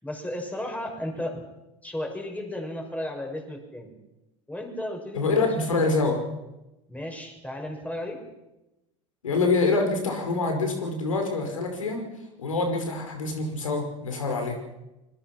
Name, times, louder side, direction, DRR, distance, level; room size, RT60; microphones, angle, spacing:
voice 1, 0.0-1.4 1.8-4.0 4.5-5.5 6.9-8.2, left 1 dB, 10° left, 3 dB, 6.3 m, -34 dB
voice 2, 5.2-6.2 9.2-12.0 12.4-14.6, left 3 dB, 90° left, 4 dB, 5.3 m, -25 dB
25.5 x 21.5 x 6.1 m, 0.98 s
hypercardioid pair, 90°, 17 cm